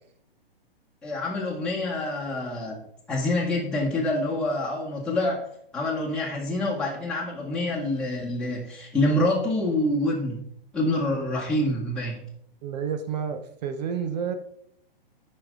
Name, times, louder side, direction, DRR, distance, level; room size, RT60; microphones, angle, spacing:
voice 1, 1.0-2.8 3.1-5.5 5.7-10.4 10.7-12.2, left 1 dB, 5° left, -6 dB, 1.9 m, -26 dB
voice 2, 12.6-14.3, right 7 dB, 45° right, 8 dB, 1.0 m, -30 dB
14.5 x 5.5 x 3.8 m, 0.71 s
figure-of-eight pair, 115°, 30 cm